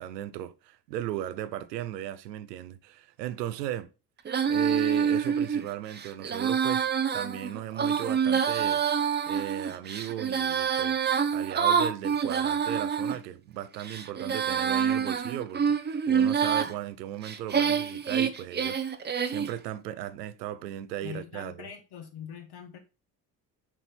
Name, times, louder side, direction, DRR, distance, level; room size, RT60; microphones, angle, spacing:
voice 1, 0.0-3.9 4.5-6.8 7.1-8.8 9.3-21.7, right 12 dB, 75° right, 0.7 m, -36 dB
Female singing, 4.2-13.2 13.7-16.7 17.2-19.5, right 7 dB, 20° right, 0.7 m, -27 dB
voice 2, 21.0-22.8, left 8 dB, 50° left, 1.2 m, -42 dB
7.1 x 4.0 x 4.4 m
figure-of-eight pair, 50°, 49 cm